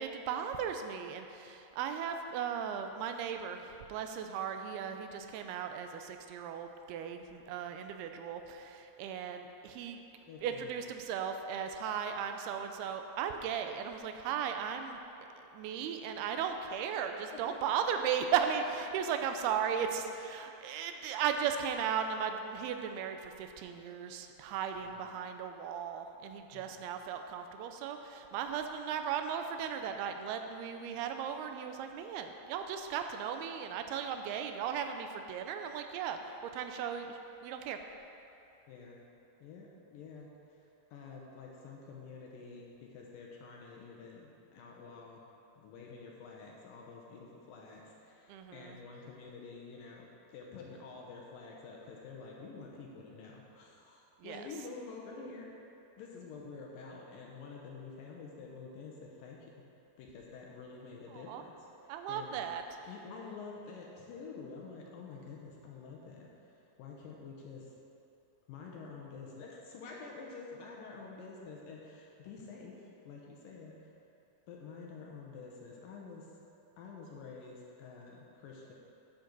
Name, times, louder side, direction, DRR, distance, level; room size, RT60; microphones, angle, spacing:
voice 1, 0.0-10.0 10.4-15.0 15.4-37.8 48.3-48.8 54.2-54.5 61.1-61.4 61.9-62.6, right 7 dB, 85° right, 6 dB, 2.5 m, -36 dB
voice 2, 10.3-10.8 17.3-17.6 24.7-25.0 26.5-26.9 38.7-39.0 39.4-40.6 40.9-45.2 45.6-55.5 56.0-59.5 60.0-66.5 66.8-67.7 68.5-73.9 74.5-76.3 76.8-78.7, left 4 dB, 75° left, -2 dB, 2.3 m, -49 dB
11.5 x 6.5 x 3.9 m, 2.9 s
omnidirectional pair, 4.5 m